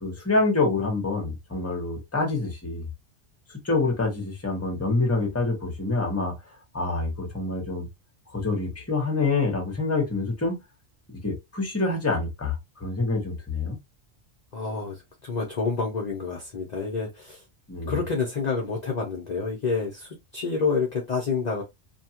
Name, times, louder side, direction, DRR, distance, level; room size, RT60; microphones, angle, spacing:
voice 1, 0.0-2.9 3.6-6.3 6.7-7.9 8.3-10.6 11.2-13.8 17.7-18.0, left 3 dB, 15° left, 0.9 m, -26 dB
voice 2, 14.5-17.4 17.9-21.6, left 4 dB, 45° left, 0.7 m, -28 dB
2.7 x 2.3 x 2.8 m
omnidirectional pair, 1.2 m